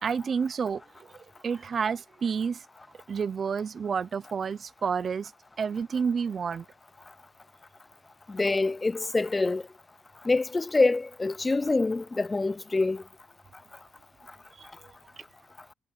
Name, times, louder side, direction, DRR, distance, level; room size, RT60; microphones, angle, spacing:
voice 1, 0.0-1.1 1.4-2.6 3.1-5.3 5.6-6.7 14.6-14.7, right 6 dB, 45° right, 0.8 m, -29 dB
voice 2, 8.3-9.6 10.3-13.0, left 3 dB, 20° left, 0.3 m, -25 dB
cardioid pair, 90°, 0 cm